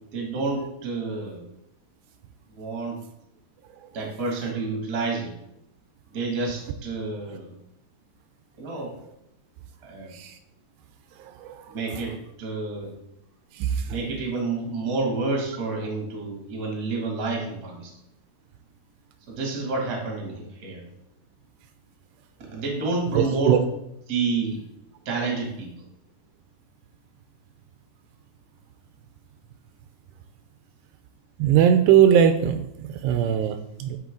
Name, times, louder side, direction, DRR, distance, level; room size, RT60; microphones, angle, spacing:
voice 1, 0.1-1.4 2.5-3.0 3.9-5.3 6.1-7.5 8.6-8.9 9.8-10.1 11.7-12.9 13.8-17.9 19.3-20.8 22.5-23.6 24.1-24.6 25.0-25.7, right 3 dB, 35° right, -1 dB, 1.6 m, -29 dB
voice 2, 23.2-23.6 31.4-32.6 33.0-34.0, right 9 dB, 85° right, 9 dB, 2.6 m, -19 dB
8.9 x 5.4 x 3.7 m, 0.80 s
omnidirectional pair, 5.0 m